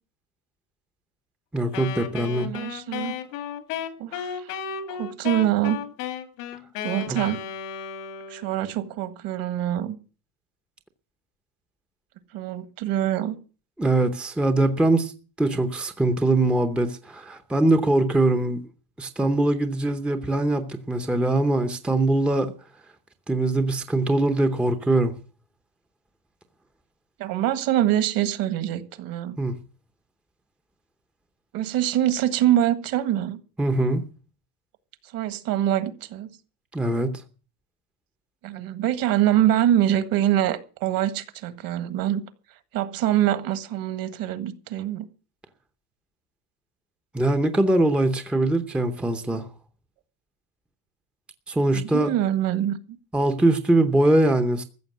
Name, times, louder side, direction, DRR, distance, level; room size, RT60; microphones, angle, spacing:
voice 1, 1.5-2.5 7.1-7.2 13.8-15.1 15.4-18.6 19.0-22.5 23.3-25.1 29.4-29.6 33.6-34.0 36.7-37.1 47.1-49.5 51.5-52.1 53.1-54.6, right 2 dB, ahead, 0.7 m, -22 dB
Wind instrument woodwind instrument, 1.7-8.6, left 8 dB, 85° left, 2.4 m, -34 dB
voice 2, 2.4-3.2 4.0-4.6 4.9-5.8 6.8-7.4 8.3-9.9 12.3-13.4 27.2-29.4 31.5-33.4 35.1-36.3 38.4-42.2 42.7-45.1 51.7-52.8, right 12 dB, 50° right, 1.7 m, -24 dB
14.5 x 7.0 x 9.4 m
cardioid pair, 150°, 46 cm